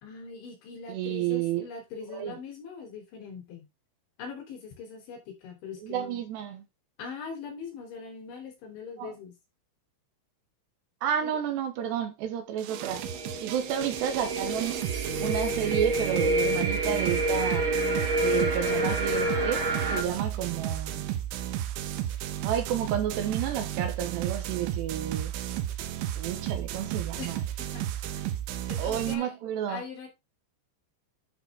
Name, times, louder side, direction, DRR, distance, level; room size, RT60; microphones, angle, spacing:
voice 1, 0.0-3.7 4.2-6.2 7.0-9.3 11.2-11.3 27.2-27.3 27.6-28.3 28.7-29.3 29.7-30.1, left 5 dB, 75° left, 5.7 m, -41 dB
voice 2, 0.9-1.7 2.1-2.3 5.8-6.6 9.0-9.1 11.0-13.0 13.4-14.8 15.1-17.7 18.2-21.0 22.4-25.3 26.2-27.4 28.8-29.8, right 10 dB, 70° right, 3.2 m, -31 dB
sound 1, 12.6-29.2, right 11 dB, 90° right, 3.4 m, -33 dB
sound 2, 12.7-20.0, right 1 dB, 45° right, 4.4 m, -29 dB
11.5 x 6.0 x 3.6 m
omnidirectional pair, 5.4 m